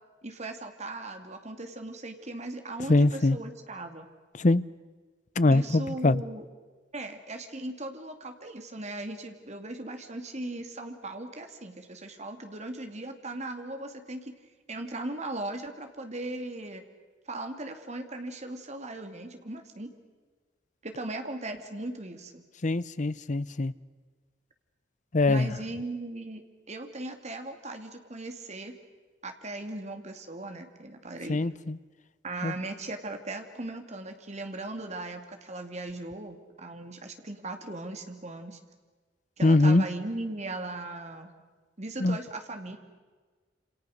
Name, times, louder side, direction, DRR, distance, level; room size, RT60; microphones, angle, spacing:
voice 1, 0.2-4.1 5.5-6.5 6.9-14.3 14.7-16.8 17.3-19.9 20.8-22.4 25.3-28.7 29.2-31.5 32.2-38.6 39.4-41.3 41.8-42.8, right 2 dB, 40° right, 6 dB, 2.5 m, -38 dB
voice 2, 2.9-3.4 4.3-4.6 5.4-6.2 22.6-23.7 25.1-25.5 31.3-31.8 32.4-32.5 39.4-39.8 42.0-42.2, left 2 dB, 40° left, 17 dB, 0.7 m, -23 dB
28.0 x 27.5 x 6.6 m, 1.4 s
head